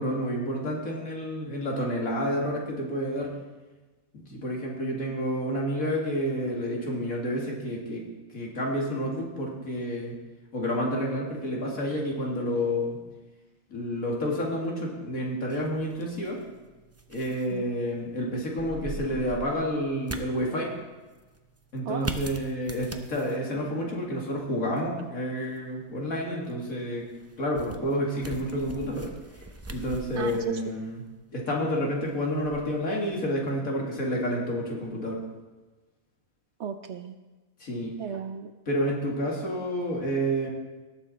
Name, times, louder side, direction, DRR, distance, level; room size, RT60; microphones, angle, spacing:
voice 1, 0.0-3.3 4.1-8.0 8.3-10.2 10.5-13.0 13.7-16.4 17.1-20.7 21.7-27.0 27.4-29.1 29.7-31.0 31.3-35.2 37.6-37.9 38.7-40.5, equal, 75° left, -2 dB, 2.7 m, -29 dB
sound 1, 15.5-33.6, right 2 dB, 20° right, 0.4 m, -44 dB
voice 2, 21.9-22.2 30.2-30.6 36.6-37.2 38.0-38.5, right 7 dB, 60° right, 8 dB, 0.8 m, -35 dB
18.5 x 7.2 x 4.3 m, 1.2 s
omnidirectional pair, 1.5 m